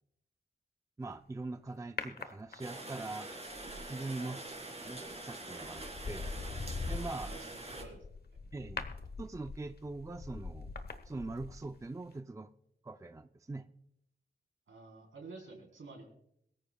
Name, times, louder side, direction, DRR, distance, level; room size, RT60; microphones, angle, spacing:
voice 1, 1.0-3.3 3.9-4.4 4.8-6.3 6.8-7.5 8.5-8.9 9.2-10.7 11.1-12.5 12.8-13.7, right 2 dB, 15° right, 0.4 m, -42 dB
sound 1, 2.0-3.0 4.9-5.2 5.6-11.8 12.1-12.2, left 4 dB, 50° left, 1.1 m, -42 dB
Rain, 2.6-7.8, right 2 dB, 30° right, 3.2 m, -44 dB
voice 2, 7.2-8.0 14.7-16.1, right 3 dB, 80° right, 4.0 m, -50 dB
22.5 x 14.0 x 2.3 m
wide cardioid pair, 130°, 20 cm